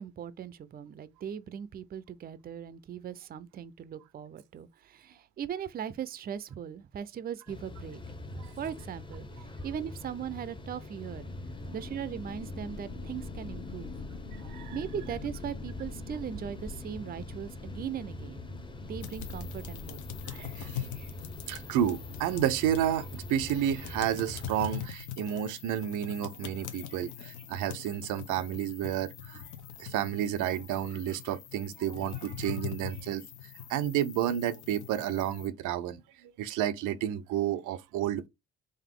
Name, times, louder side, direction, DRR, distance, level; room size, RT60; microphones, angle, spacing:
voice 1, 0.0-8.0 8.3-9.3 9.6-11.2 11.7-13.9 14.7-18.4 18.9-20.0, right 8 dB, 30° right, 0.4 m, -39 dB
sound 1, 7.5-24.9, left 1 dB, 15° left, 0.7 m, -43 dB
sound 2, 11.0-23.3, left 4 dB, 45° left, 0.8 m, -47 dB
voice 2, 14.4-14.8 20.3-21.1 21.5-29.4 29.8-33.2 33.7-38.3, right 10 dB, 90° right, 0.5 m, -31 dB
sound 3, 19.0-35.5, left 10 dB, 75° left, 0.8 m, -43 dB
3.9 x 2.6 x 3.6 m
cardioid pair, 90°, 30 cm